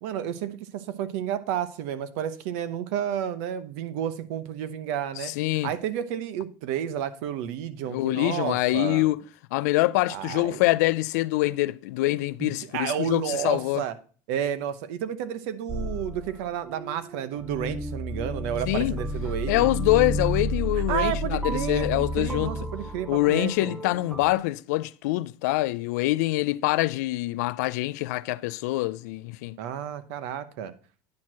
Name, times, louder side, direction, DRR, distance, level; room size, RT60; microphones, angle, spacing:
voice 1, 0.0-5.3 5.6-9.1 10.1-10.6 12.4-13.9 14.3-19.7 20.9-23.7 29.6-30.7, right 9 dB, 60° right, 0.8 m, -31 dB
voice 2, 5.2-5.7 7.9-9.2 9.5-13.8 18.7-18.9 19.5-22.5 23.1-29.6, left 18 dB, 85° left, 0.4 m, -25 dB
sound 1, 15.7-24.3, equal, 5° right, 0.5 m, -32 dB
9.6 x 4.5 x 6.1 m
cardioid pair, 175°, 9 cm